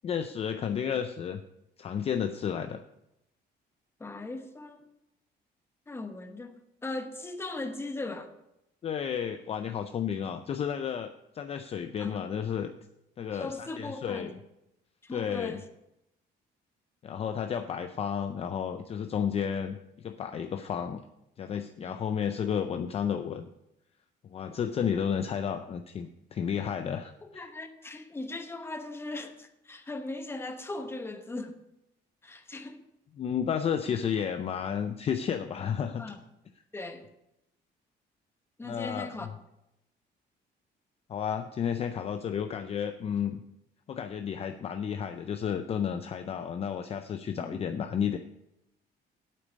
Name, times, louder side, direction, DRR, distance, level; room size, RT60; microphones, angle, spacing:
voice 1, 0.0-1.4 1.8-2.8 8.8-12.7 13.2-14.3 15.1-15.6 17.0-21.0 21.4-23.5 24.3-27.4 33.2-36.1 38.6-39.3 41.1-43.4 43.9-48.2, left 8 dB, 35° left, 0.4 m, -32 dB
voice 2, 4.0-4.9 5.9-6.5 6.8-8.3 12.0-12.2 13.3-14.4 15.0-15.6 21.8-22.0 27.2-31.6 32.2-32.8 36.0-36.2 36.7-37.1 38.6-39.3 47.4-47.6, left 2 dB, 15° left, 0.9 m, -38 dB
8.6 x 8.4 x 5.2 m
cardioid pair, 155°, 18 cm